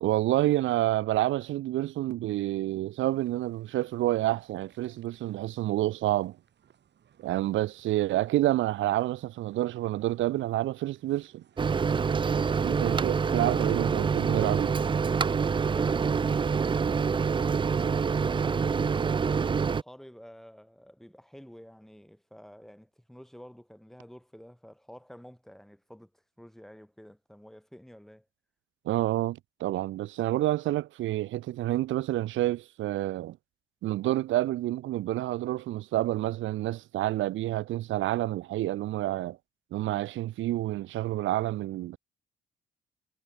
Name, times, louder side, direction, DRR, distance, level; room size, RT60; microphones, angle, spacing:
voice 1, 0.0-6.4 7.2-11.4 12.6-14.7 28.8-33.4 33.8-39.4 39.7-42.0, right 15 dB, 75° right, 0.6 m, -28 dB
sound 1, 2.9-18.1, right 9 dB, 60° right, 5.7 m, -63 dB
Microwave oven, 11.6-19.8, right 5 dB, 25° right, 0.4 m, -26 dB
voice 2, 15.5-19.0 19.7-26.1 26.4-28.3, equal, ahead, 2.7 m, -50 dB
cardioid pair, 90°, 20 cm